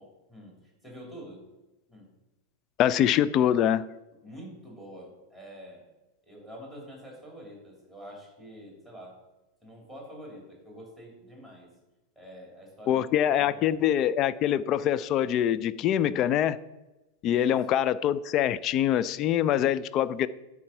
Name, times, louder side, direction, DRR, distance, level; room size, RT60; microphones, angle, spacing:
voice 1, 0.0-1.5 1.9-2.1 4.2-5.8 6.2-9.2 9.6-11.7 12.1-13.8 17.2-17.7, equal, 10° left, 3.0 m, -46 dB
voice 2, 2.8-3.9 12.9-16.6 17.2-20.3, left 10 dB, 35° left, 0.3 m, -24 dB
9.6 x 3.6 x 5.5 m
figure-of-eight pair, 90°, 0 cm